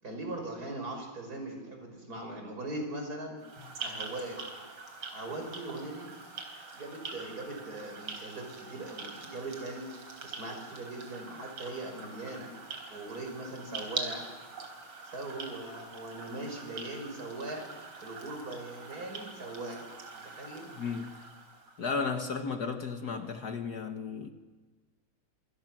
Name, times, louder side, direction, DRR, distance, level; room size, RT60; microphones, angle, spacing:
voice 1, 0.0-3.4 3.8-4.4 5.1-6.1 6.7-9.9 10.2-12.5 12.9-14.3 15.0-17.7 18.0-19.9 20.2-20.7, right 2 dB, 45° right, 5.9 m, -40 dB
sound 1, 3.4-21.8, right 4 dB, 80° right, 4.8 m, -44 dB
voice 2, 20.7-21.3 21.8-24.3, left 5 dB, 55° left, 1.8 m, -34 dB
26.5 x 25.5 x 6.1 m
omnidirectional pair, 2.3 m